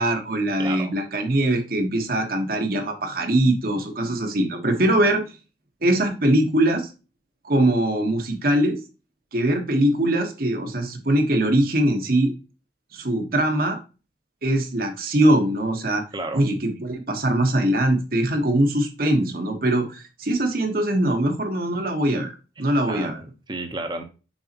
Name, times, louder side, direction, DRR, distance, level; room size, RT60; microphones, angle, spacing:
voice 1, 0.0-5.2 5.8-6.9 7.4-8.8 9.3-12.3 12.9-13.8 14.4-16.0 16.3-23.2, right 1 dB, 50° right, 4 dB, 1.3 m, -22 dB
voice 2, 0.6-0.9 16.1-16.4 22.9-24.0, right 2 dB, 25° right, 5 dB, 0.9 m, -32 dB
7.0 x 4.8 x 2.9 m, 0.32 s
head